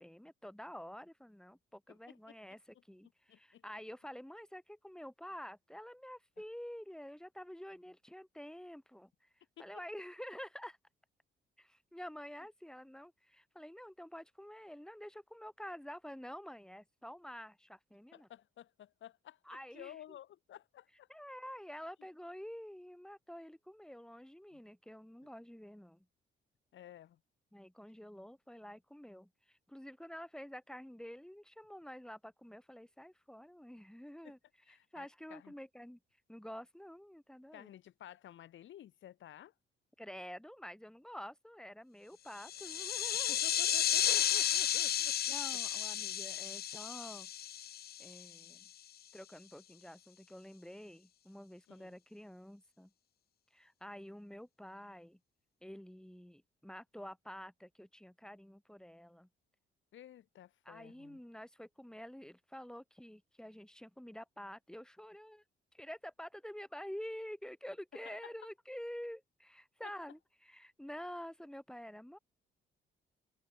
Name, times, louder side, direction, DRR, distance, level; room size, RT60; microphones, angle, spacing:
voice 1, 0.0-9.1 9.6-10.8 11.6-18.3 19.4-20.2 21.1-26.0 27.5-34.4 34.7-36.0 36.3-37.7 40.0-43.4 45.3-47.3 48.0-48.7 49.1-52.9 53.5-55.2 55.6-59.3 60.6-65.4 65.7-72.2, equal, 5° left, 6.6 m, -49 dB
voice 2, 1.9-2.3 3.3-3.6 9.6-9.7 18.1-19.4 19.7-21.1 24.5-24.6 26.7-27.2 34.2-34.3 34.7-35.5 37.5-39.5 43.3-45.3 51.7-52.0 59.9-61.2 67.9-68.2 69.8-69.9, left 11 dB, 75° left, 6.8 m, -53 dB
sound 1, 42.4-48.4, left 10 dB, 55° left, 0.7 m, -33 dB
open air
cardioid pair, 90°, 20 cm